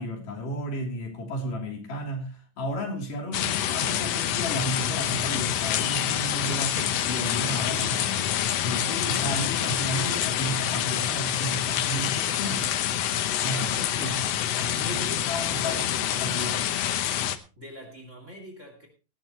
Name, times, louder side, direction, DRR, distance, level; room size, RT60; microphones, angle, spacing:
voice 1, 0.0-8.2 8.6-12.8 13.4-13.7 13.9-15.0 15.3-16.6, equal, 65° left, 4.8 m, -33 dB
sound 1, 3.3-17.4, left 11 dB, 85° left, 1.4 m, -27 dB
voice 2, 13.5-14.3 14.8-15.9 17.6-18.9, right 1 dB, 20° right, 2.6 m, -43 dB
18.5 x 12.0 x 3.1 m
omnidirectional pair, 4.0 m